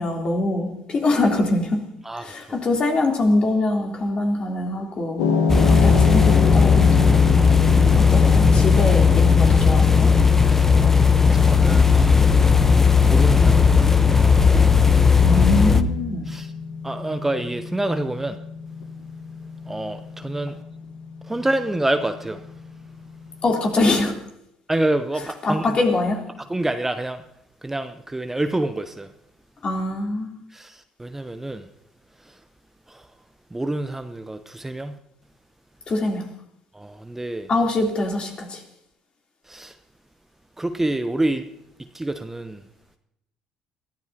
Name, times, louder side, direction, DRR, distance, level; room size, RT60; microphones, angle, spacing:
voice 1, 0.0-1.8 2.2-5.2 5.7-7.2 8.0-10.1 15.2-16.3 23.4-24.1 25.4-26.2 29.6-30.3 35.9-36.2 37.5-38.6, left 2 dB, 40° left, 3.4 m, -23 dB
voice 2, 2.0-2.6 5.6-5.8 7.8-8.1 10.4-10.7 11.3-12.4 13.0-14.2 16.3-16.5 16.8-18.4 19.7-20.6 21.3-22.4 24.7-25.8 26.5-27.2 27.6-29.1 30.5-31.7 32.9-33.0 33.5-35.0 36.7-37.5 39.5-39.7 40.6-41.5 41.9-42.6, right 1 dB, 10° right, 0.8 m, -27 dB
sound 1, 5.2-23.4, left 5 dB, 70° left, 1.4 m, -27 dB
sound 2, 5.5-15.8, left 5 dB, 15° left, 1.0 m, -16 dB
23.0 x 13.5 x 2.9 m
hypercardioid pair, 55°, 3 cm